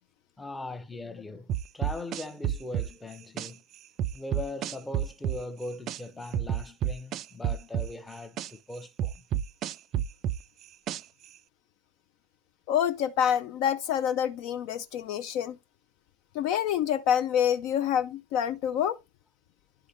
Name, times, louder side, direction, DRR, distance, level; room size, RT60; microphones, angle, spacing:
voice 1, 0.4-3.6 4.1-9.2, left 2 dB, 10° left, 0.6 m, -40 dB
sound 1, 1.5-3.5 4.0-6.0 6.3-8.5 9.0-11.3, right 10 dB, 35° right, 0.3 m, -30 dB
voice 2, 12.7-15.6 16.3-19.0, left 9 dB, 45° left, 0.4 m, -27 dB
11.0 x 3.7 x 2.9 m
figure-of-eight pair, 90°, 0 cm